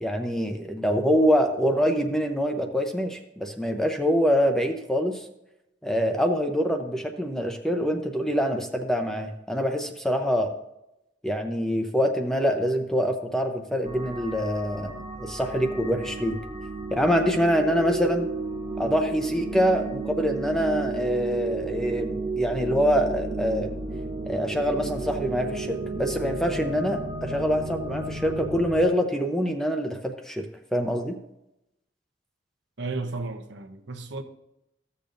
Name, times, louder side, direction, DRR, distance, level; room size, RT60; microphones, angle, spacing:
voice 1, 0.0-5.2 5.8-10.5 11.2-14.9 15.2-16.4 16.9-18.3 18.8-23.7 24.3-30.4 30.7-31.2, equal, 5° left, 0.7 m, -25 dB
sound 1, 13.8-28.9, right 2 dB, 35° right, 1.4 m, -33 dB
voice 2, 32.8-34.2, right 3 dB, 70° right, 0.9 m, -33 dB
14.5 x 6.9 x 2.6 m
head